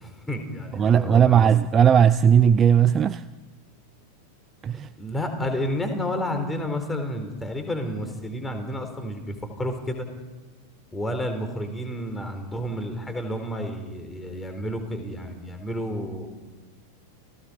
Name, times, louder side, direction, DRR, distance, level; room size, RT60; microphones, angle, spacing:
voice 1, 0.0-1.5 5.0-10.1 10.9-16.3, equal, 10° left, 6 dB, 4.1 m, -31 dB
voice 2, 0.7-3.2 4.6-4.9, right 8 dB, 25° right, 14 dB, 0.6 m, -17 dB
29.5 x 17.0 x 5.3 m, 1.2 s
figure-of-eight pair, 90°, 0 cm